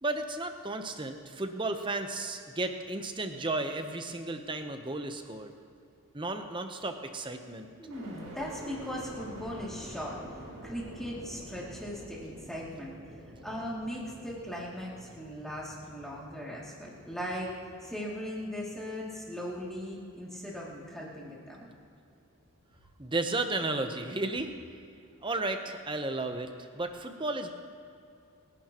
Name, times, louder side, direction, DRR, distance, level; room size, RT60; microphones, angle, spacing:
voice 1, 0.0-5.5 6.1-7.7 23.0-24.5 25.2-27.5, right 2 dB, 20° right, 6 dB, 0.8 m, -33 dB
voice 2, 7.8-12.9 13.4-21.7, equal, ahead, -6 dB, 2.5 m, -39 dB
sound 1, 7.9-21.9 22.4-23.1, equal, 90° right, 4.3 m, -49 dB
28.0 x 11.0 x 3.0 m, 2.5 s
head